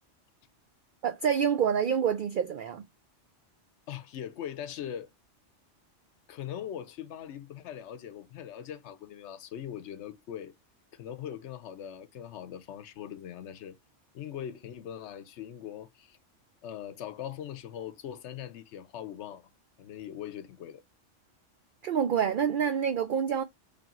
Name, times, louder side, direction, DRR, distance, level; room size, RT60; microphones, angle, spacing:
voice 1, 1.0-2.8 21.8-23.4, right 8 dB, 60° right, 0.5 m, -27 dB
voice 2, 3.9-5.1 6.3-10.5 10.9-13.8 14.1-16.2 16.6-19.5 19.8-20.8, left 10 dB, 70° left, 0.9 m, -41 dB
3.8 x 3.4 x 2.9 m
omnidirectional pair, 1.3 m